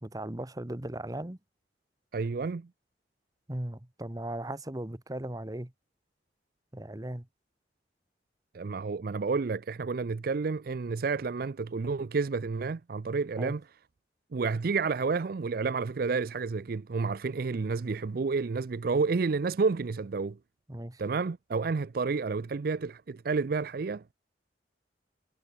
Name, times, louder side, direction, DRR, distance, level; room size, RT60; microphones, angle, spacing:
voice 1, 0.0-1.4 3.5-5.7 6.7-7.3 13.4-13.6 20.7-21.0, right 1 dB, 20° right, 1.1 m, -37 dB
voice 2, 2.1-2.7 8.5-13.6 14.3-20.4 21.0-24.0, right 4 dB, 55° right, 0.5 m, -30 dB
head